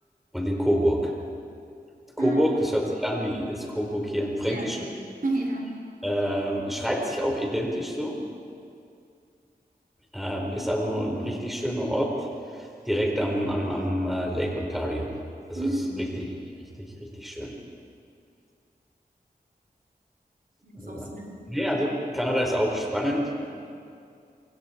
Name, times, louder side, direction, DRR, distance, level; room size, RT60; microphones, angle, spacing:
voice 1, 0.3-1.1 2.2-4.9 6.0-8.2 10.1-15.1 15.5-16.2 16.7-17.5 20.7-21.1 21.5-23.3, equal, ahead, -1 dB, 4.7 m, -27 dB
voice 2, 5.2-5.8 15.5-16.1 20.6-21.4, right 1 dB, 60° right, 0 dB, 4.0 m, -30 dB
27.0 x 26.0 x 4.6 m, 2.4 s
wide cardioid pair, 70°, 16 cm